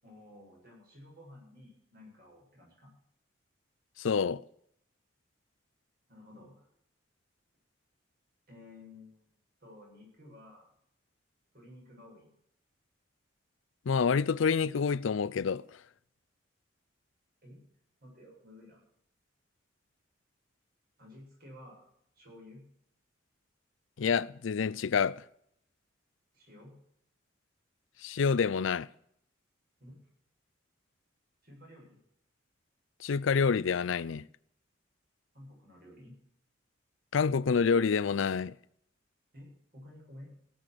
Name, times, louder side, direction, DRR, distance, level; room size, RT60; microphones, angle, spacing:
voice 1, 0.0-2.9 6.1-6.7 8.5-9.3 9.6-10.7 11.5-12.3 17.4-17.6 18.0-18.8 21.0-21.8 22.2-22.6 26.3-26.8 29.8-30.0 31.4-32.0 35.3-36.1 39.3-40.3, left 1 dB, 50° right, 7.7 m, -53 dB
voice 2, 4.0-4.4 13.9-15.6 24.0-25.2 28.0-28.9 33.0-34.2 37.1-38.5, left 5 dB, 85° left, 0.5 m, -27 dB
17.5 x 7.9 x 6.6 m
head